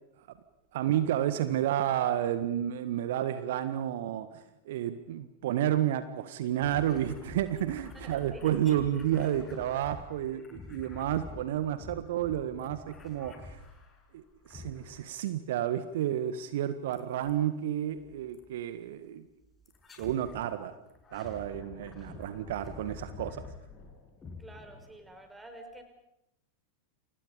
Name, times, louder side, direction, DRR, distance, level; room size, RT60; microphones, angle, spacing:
voice 1, 0.7-13.6 14.1-19.2 20.0-20.8 21.1-23.4, right 11 dB, 55° right, 11 dB, 1.6 m, -31 dB
sound 1, 6.6-14.1 14.5-15.2 16.9-17.4 18.3-18.5 19.7-20.5 20.9-25.3, left 3 dB, 15° left, 6.8 m, -48 dB
voice 2, 7.9-8.5 24.4-25.8, right 1 dB, 10° right, 7 dB, 5.5 m, -49 dB
30.0 x 29.5 x 5.4 m, 0.83 s
figure-of-eight pair, 90°, 0 cm